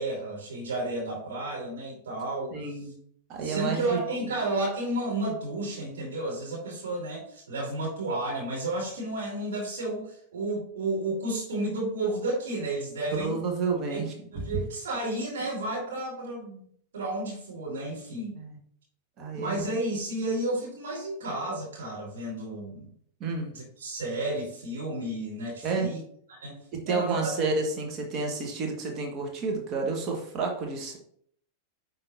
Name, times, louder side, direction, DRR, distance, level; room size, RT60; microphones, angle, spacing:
voice 1, 0.0-2.5 3.4-13.4 13.9-16.7 16.9-18.4 19.3-22.9 23.5-26.0 26.3-26.6 26.9-27.3, right 2 dB, 65° right, -3 dB, 2.7 m, -32 dB
voice 2, 2.5-2.9 3.3-4.3 13.2-14.1 18.3-18.6 19.2-19.6 23.2-23.5 25.6-25.9 26.7-31.0, right 4 dB, 35° right, 1 dB, 1.7 m, -30 dB
9.6 x 3.9 x 2.7 m, 0.63 s
figure-of-eight pair, 90°, 0 cm